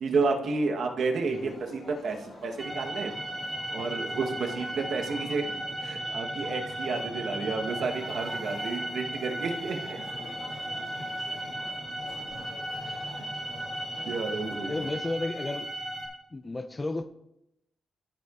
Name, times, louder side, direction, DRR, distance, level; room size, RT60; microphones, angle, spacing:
voice 1, 0.0-3.1 3.7-10.0 14.1-14.9, right 4 dB, 60° right, 3 dB, 1.0 m, -31 dB
sound 1, 1.2-14.9, left 2 dB, 50° left, 2.2 m, -48 dB
voice 2, 1.3-1.6 12.8-13.0 13.9-14.2 14.7-15.7 16.3-17.1, left 2 dB, 20° left, 11 dB, 0.4 m, -33 dB
sound 2, 2.6-16.1, right 1 dB, ahead, 2.5 m, -36 dB
14.0 x 6.6 x 2.4 m, 0.83 s
wide cardioid pair, 160°, 0 cm